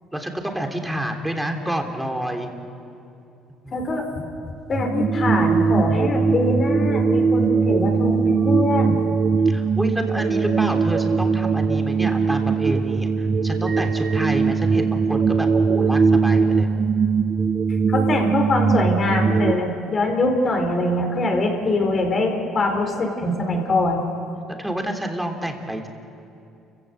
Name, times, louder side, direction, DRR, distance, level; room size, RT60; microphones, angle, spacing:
voice 1, 0.1-2.5 3.6-4.4 9.4-16.7 23.7-23.9 24.6-25.9, right 1 dB, 5° right, 3 dB, 3.5 m, -29 dB
voice 2, 3.7-4.0 4.7-9.0 17.9-24.0, left 2 dB, 40° left, 3 dB, 4.6 m, -23 dB
sound 1, 4.7-19.5, right 5 dB, 35° right, 0.7 m, -20 dB
29.0 x 16.0 x 8.1 m, 2.8 s
supercardioid pair, 80°, 0 cm